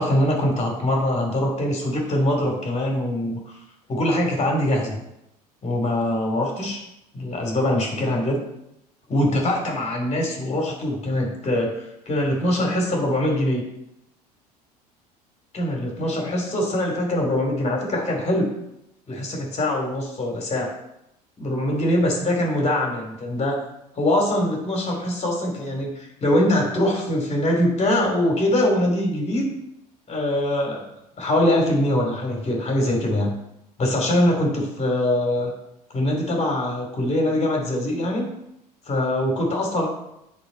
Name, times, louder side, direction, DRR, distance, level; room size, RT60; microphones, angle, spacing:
voice 1, 0.0-3.6 3.9-5.0 5.6-6.8 7.1-8.4 9.1-13.6 15.5-18.5 19.1-20.7 21.4-23.6 23.9-29.5 30.1-30.9 31.2-33.3 33.8-35.5 35.9-38.3 38.9-39.9, left 1 dB, 35° left, 1 dB, 2.7 m, -23 dB
9.8 x 4.2 x 4.3 m, 0.84 s
hypercardioid pair, 75°, 20 cm